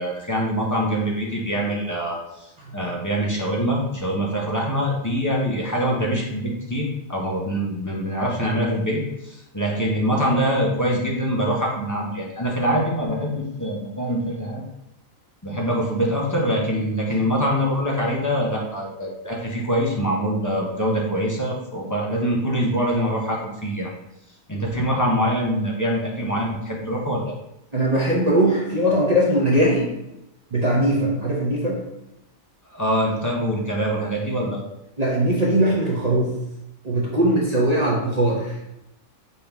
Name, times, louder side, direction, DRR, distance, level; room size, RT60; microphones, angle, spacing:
voice 1, 0.0-14.7 15.4-23.9 24.5-27.2 32.7-34.6, equal, 30° left, -3 dB, 0.3 m, -24 dB
voice 2, 27.7-29.9 30.5-31.8 35.0-36.3 36.8-38.5, right 1 dB, 40° right, -4 dB, 0.6 m, -20 dB
5.4 x 2.8 x 3.4 m, 0.88 s
omnidirectional pair, 1.5 m